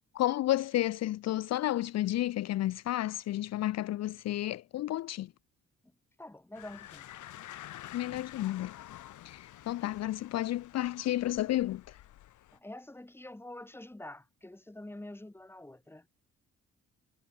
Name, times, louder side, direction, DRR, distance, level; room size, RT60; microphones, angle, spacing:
voice 1, 0.1-5.3 7.9-8.7 9.2-12.0, left 14 dB, 60° left, 0.5 m, -31 dB
voice 2, 6.2-7.1 12.5-16.1, left 1 dB, 10° left, 2.0 m, -46 dB
sound 1, 6.5-12.6, left 13 dB, 80° left, 4.5 m, -49 dB
cardioid pair, 90°, 30 cm